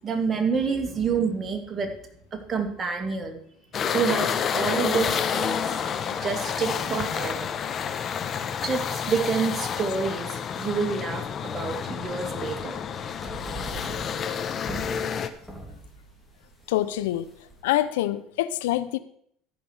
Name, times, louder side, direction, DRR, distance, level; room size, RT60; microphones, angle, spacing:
voice 1, 0.0-1.9 2.3-3.4 3.9-5.8 6.2-7.3 8.6-12.7, right 5 dB, 30° right, 5 dB, 2.3 m, -28 dB
sound 1, 3.7-15.3, left 7 dB, 45° left, 1.0 m, -29 dB
sound 2, 11.0-17.6, right 1 dB, 5° right, 3.0 m, -42 dB
voice 2, 16.7-17.3 17.6-19.0, left 14 dB, 85° left, 14 dB, 0.6 m, -25 dB
13.5 x 5.3 x 6.3 m, 0.67 s
supercardioid pair, 90°, 0 cm